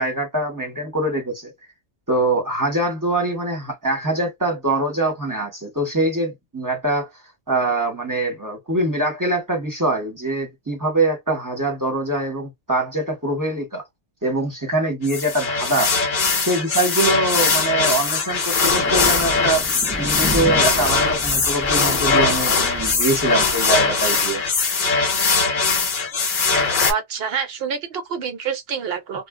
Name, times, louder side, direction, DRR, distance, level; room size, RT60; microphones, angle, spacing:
voice 1, 0.0-1.5 2.1-7.1 7.5-13.8 14.2-15.9 16.4-19.6 20.0-24.4, right 2 dB, 20° right, 0.9 m, -23 dB
sound 1, 15.0-26.9, left 4 dB, 50° left, 0.9 m, -20 dB
Thunder, 18.6-23.7, equal, 10° left, 0.6 m, -32 dB
voice 2, 26.9-29.3, right 7 dB, 60° right, 0.8 m, -27 dB
2.2 x 2.0 x 3.5 m
omnidirectional pair, 1.2 m